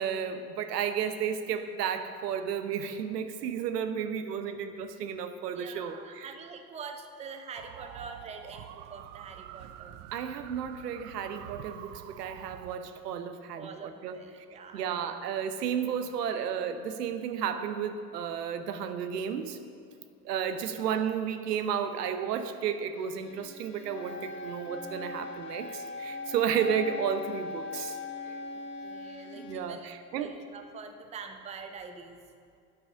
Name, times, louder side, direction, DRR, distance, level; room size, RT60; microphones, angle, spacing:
voice 1, 0.0-6.3 10.1-13.7 14.0-14.2 14.7-19.6 20.2-28.0 29.4-30.3, right 8 dB, 75° right, 9 dB, 1.0 m, -32 dB
voice 2, 5.5-10.0 13.5-15.1 28.8-32.2, right 5 dB, 15° right, 6 dB, 0.7 m, -45 dB
sound 1, 7.5-12.8, right 12 dB, 50° right, 0.6 m, -47 dB
Bowed string instrument, 22.9-29.8, left 3 dB, 25° left, 0.7 m, -49 dB
Wind instrument woodwind instrument, 23.9-29.4, left 3 dB, 55° left, 1.7 m, -40 dB
10.0 x 8.8 x 5.7 m, 2.5 s
hypercardioid pair, 100°, 48 cm